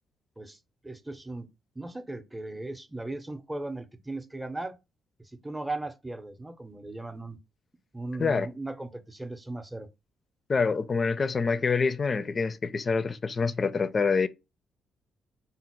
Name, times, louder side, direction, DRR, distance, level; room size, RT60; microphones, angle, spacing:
voice 1, 0.8-1.5 1.8-4.8 5.3-7.4 7.9-9.9, right 2 dB, 15° right, 0.6 m, -37 dB
voice 2, 10.5-14.3, left 5 dB, 40° left, 0.4 m, -26 dB
4.0 x 2.1 x 4.4 m
hypercardioid pair, 55°, 0 cm